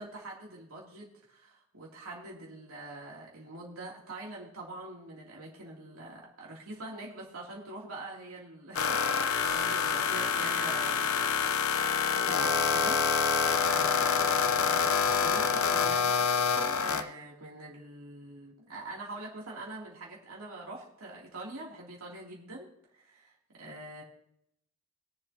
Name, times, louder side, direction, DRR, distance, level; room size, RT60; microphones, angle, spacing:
voice 1, 0.0-11.1 12.3-14.9 15.2-16.3 16.7-24.0, right 2 dB, 85° right, -4 dB, 2.8 m, -44 dB
sound 1, 8.8-17.0, left 6 dB, 75° left, 0.8 m, -27 dB
22.0 x 7.4 x 2.9 m, 0.73 s
head